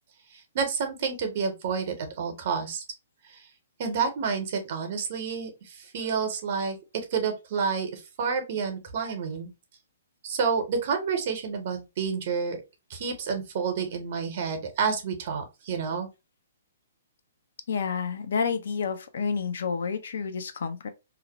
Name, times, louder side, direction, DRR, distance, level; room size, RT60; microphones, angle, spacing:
voice 1, 0.5-2.8 3.8-6.8 7.1-9.5 10.2-12.6 12.9-16.1, right 5 dB, 50° right, 0.7 m, -29 dB
voice 2, 17.7-20.9, left 5 dB, 65° left, 0.4 m, -29 dB
2.5 x 2.0 x 2.8 m
figure-of-eight pair, 125°, 0 cm